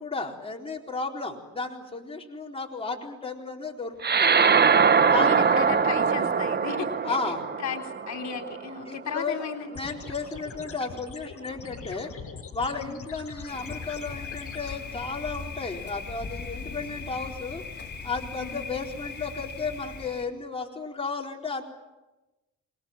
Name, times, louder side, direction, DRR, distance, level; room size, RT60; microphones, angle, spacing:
voice 1, 0.0-4.7 5.1-5.5 7.0-7.4 8.9-9.4 9.7-12.1 12.5-17.6 18.0-21.6, left 4 dB, 20° left, 0 dB, 4.2 m, -33 dB
sound 1, 4.0-8.8, right 6 dB, 35° right, 1.1 m, -22 dB
voice 2, 5.2-9.7 12.8-13.0 18.4-18.6, left 6 dB, 65° left, 5 dB, 3.6 m, -35 dB
sound 2, 9.7-14.8, left 6 dB, 50° left, 6.2 m, -42 dB
Thunder, 13.5-20.3, left 4 dB, 35° left, 4.6 m, -39 dB
26.0 x 21.0 x 9.0 m, 1.1 s
cardioid pair, 90°, 30 cm